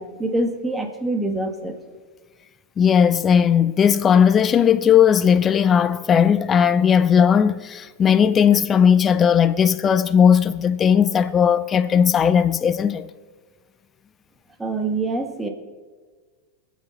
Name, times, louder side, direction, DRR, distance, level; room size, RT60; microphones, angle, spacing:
voice 1, 0.0-1.8 14.6-15.5, right 2 dB, 10° right, 1.7 m, -25 dB
voice 2, 2.8-13.1, left 7 dB, 25° left, 0.5 m, -17 dB
21.5 x 7.2 x 4.2 m
hypercardioid pair, 110°, 0 cm